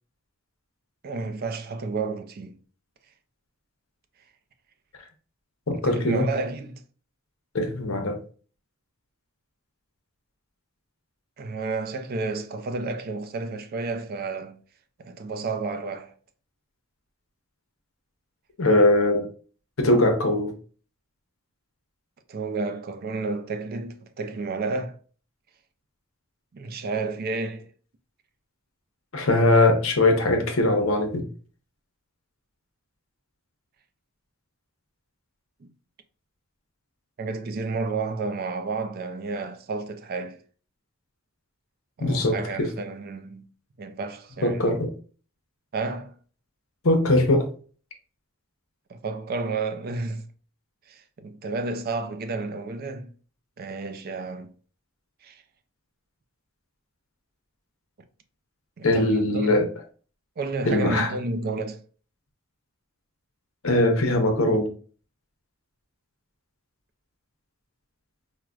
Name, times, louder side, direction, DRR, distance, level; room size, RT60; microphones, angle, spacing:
voice 1, 1.0-2.6 5.8-6.8 11.4-14.6 15.0-16.1 22.3-25.0 26.5-27.7 35.6-35.7 37.2-40.4 42.0-43.5 43.8-44.8 45.7-46.1 48.9-50.3 50.9-53.1 53.6-54.5 55.2-55.4 58.8-59.7 60.4-61.8, right 3 dB, 45° right, 0.4 m, -31 dB
voice 2, 5.7-6.3 7.5-8.2 18.6-19.3 19.8-20.5 29.1-31.3 42.0-42.7 44.4-44.9 46.8-47.5 58.8-59.7 60.6-61.1 63.6-64.7, left 2 dB, 70° left, 0.7 m, -21 dB
4.6 x 2.1 x 2.4 m
head